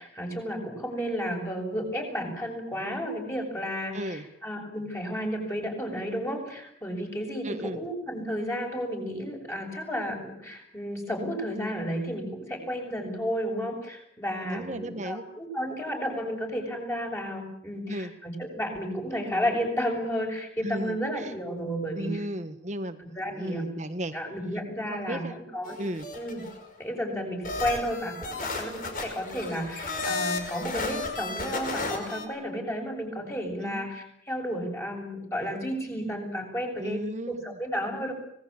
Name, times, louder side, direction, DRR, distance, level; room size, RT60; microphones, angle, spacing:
voice 1, 0.0-22.2 23.1-23.7 24.1-25.7 26.1-26.4 26.8-37.0 37.3-38.1, equal, 15° left, 1 dB, 7.3 m, -32 dB
voice 2, 3.9-4.3 7.4-7.8 14.4-15.2 17.9-18.1 20.6-21.3 21.9-24.1 24.9-25.4 25.8-26.1 33.6-33.9 36.8-37.6, right 1 dB, 40° right, 9 dB, 1.6 m, -35 dB
sound 1, 25.6-26.7 27.4-32.3, left 3 dB, 50° left, 5.4 m, -33 dB
25.5 x 20.0 x 8.7 m, 0.69 s
head